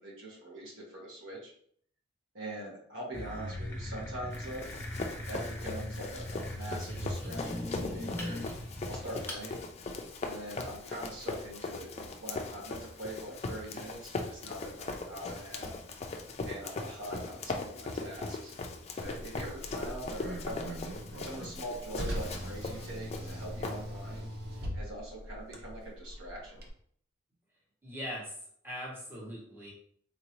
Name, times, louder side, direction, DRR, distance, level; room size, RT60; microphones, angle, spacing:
voice 1, 0.0-1.5 2.3-4.7 5.3-8.4 8.8-9.6 10.2-15.8 16.4-18.5 18.9-20.7 21.2-24.3 24.7-26.6, right 1 dB, 70° right, -4 dB, 1.2 m, -43 dB
sound 1, 3.1-9.4, left 1 dB, 10° left, 0.7 m, -39 dB
Run, 4.3-24.2, left 3 dB, 30° left, 0.4 m, -40 dB
Car, 19.0-26.7, equal, 55° right, 0.7 m, -41 dB
voice 2, 27.8-28.3 28.6-29.7, equal, 10° right, -6 dB, 1.1 m, -40 dB
3.8 x 2.6 x 3.0 m, 0.62 s
head